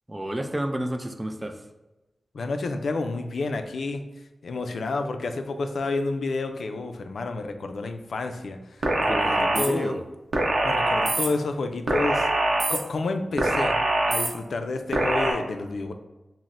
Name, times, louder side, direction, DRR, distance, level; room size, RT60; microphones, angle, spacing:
voice 1, 0.1-1.6 9.0-10.0, right 1 dB, 15° right, 7 dB, 0.3 m, -30 dB
voice 2, 2.3-4.0 4.4-9.9 10.6-12.3 12.7-13.8 14.1-15.9, left 3 dB, 85° left, 6 dB, 0.3 m, -30 dB
sound 1, 8.8-9.7 10.3-11.3 11.9-12.8 13.4-14.3 14.9-15.3, right 2 dB, 80° right, 0.7 m, -23 dB
5.8 x 2.0 x 2.5 m, 1.1 s
wide cardioid pair, 95°, 0 cm